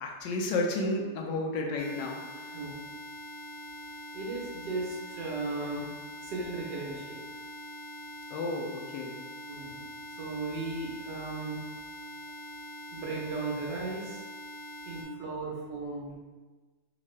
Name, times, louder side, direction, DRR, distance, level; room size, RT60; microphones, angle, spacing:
voice 1, 0.0-2.6 8.3-9.2, left 2 dB, 85° left, 2 dB, 1.2 m, -32 dB
sound 1, 1.8-15.0, right 1 dB, 65° left, 0.8 m, -44 dB
voice 2, 4.1-5.9 6.2-7.2 9.5-9.8 10.2-11.6 12.9-14.2 14.8-16.1, right 3 dB, 75° right, -2 dB, 1.4 m, -36 dB
3.6 x 2.5 x 3.1 m, 1.3 s
omnidirectional pair, 1.9 m